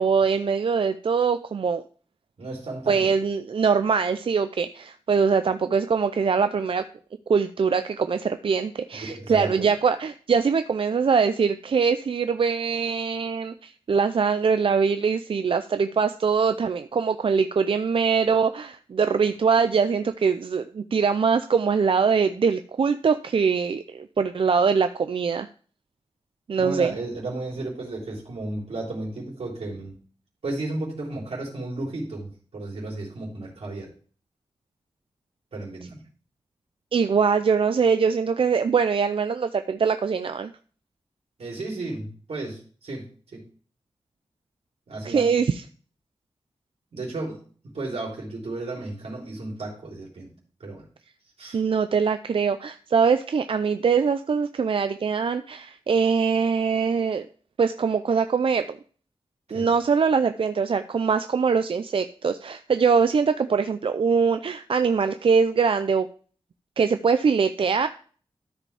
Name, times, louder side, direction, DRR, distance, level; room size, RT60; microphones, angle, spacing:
voice 1, 0.0-1.8 2.9-6.8 7.3-25.5 26.5-26.9 36.9-40.5 45.0-45.6 51.5-57.3 57.6-58.8 59.5-66.1 66.8-67.9, right 5 dB, 60° right, 10 dB, 0.4 m, -23 dB
voice 2, 2.4-3.1 8.9-9.7 26.6-29.9 30.4-33.9 35.5-36.0 41.4-43.5 44.9-45.4 46.9-47.4 47.7-50.3 50.6-50.9 51.4-51.6 59.5-59.7, right 2 dB, 85° right, -2 dB, 3.4 m, -33 dB
13.0 x 5.1 x 3.3 m, 0.42 s
wide cardioid pair, 95°, 10 cm